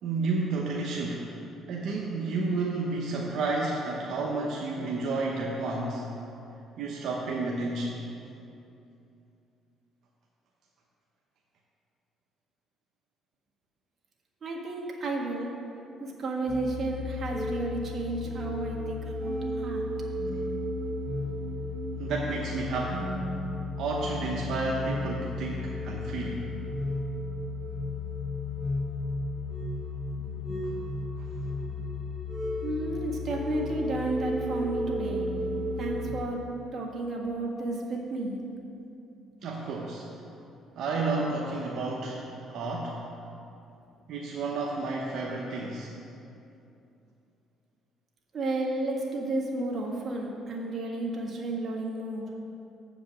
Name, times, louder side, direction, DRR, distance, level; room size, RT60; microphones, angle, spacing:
voice 1, 0.0-1.3 1.7-6.1 6.8-8.0 20.3-20.4 22.0-23.1 23.8-26.4 31.2-31.3 39.4-40.1 40.8-43.0 44.1-45.9, right 3 dB, 70° right, -2 dB, 0.9 m, -31 dB
voice 2, 14.4-15.5 16.0-19.8 20.1-20.3 30.1-31.0 31.7-31.8 32.6-35.2 35.8-36.4 36.7-38.4 48.3-52.3, right 2 dB, 45° right, -1 dB, 1.6 m, -32 dB
sound 1, 16.5-36.1, left 2 dB, 15° right, 2.2 m, -33 dB
7.5 x 5.2 x 7.3 m, 2.7 s
cardioid pair, 85°, 0 cm